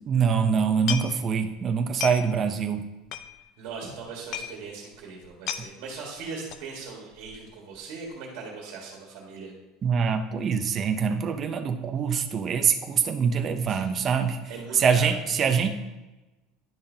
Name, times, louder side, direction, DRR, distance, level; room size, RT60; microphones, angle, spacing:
voice 1, 0.1-2.9 9.8-15.7, right 6 dB, 25° right, 6 dB, 0.5 m, -24 dB
sound 1, 0.9-1.5 1.8-2.5 2.8-2.9 3.1-3.7 4.0-4.1 4.3-4.6 4.9-5.0 5.2-5.7 6.5-6.7 7.1-7.5 7.7-7.8, left 10 dB, 45° left, 0.4 m, -34 dB
voice 2, 3.6-9.5 13.7-13.8 14.5-15.2, right 4 dB, 60° right, -2 dB, 1.7 m, -39 dB
10.5 x 5.5 x 2.7 m, 1.1 s
cardioid pair, 170°, 0 cm